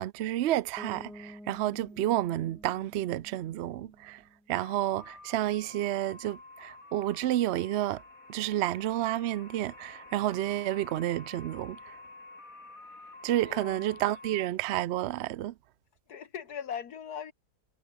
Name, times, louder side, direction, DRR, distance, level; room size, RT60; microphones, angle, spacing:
voice 1, 0.0-4.2 4.5-8.0 8.3-12.0 13.2-15.5, right 13 dB, 75° right, 0.6 m, -30 dB
Bass guitar, 0.8-4.6, equal, ahead, 0.6 m, -50 dB
sound 1, 4.6-14.5, left 2 dB, 60° left, 5.1 m, -50 dB
voice 2, 13.4-14.0 16.1-17.3, left 8 dB, 75° left, 1.9 m, -40 dB
omnidirectional pair, 1.7 m